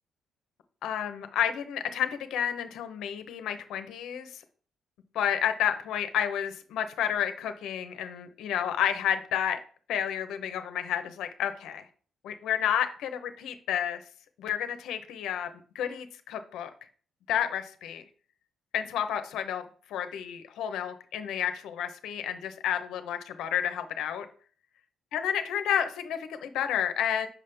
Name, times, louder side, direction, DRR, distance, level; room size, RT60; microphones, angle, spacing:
voice 1, 0.8-4.4 5.1-9.6 9.9-11.8 12.2-14.0 14.4-15.5 15.7-16.7 17.3-18.0 18.7-19.6 19.9-24.3 25.1-27.3, left 9 dB, 85° left, 8 dB, 0.8 m, -30 dB
6.2 x 5.3 x 3.4 m, 0.43 s
cardioid pair, 90°, 0 cm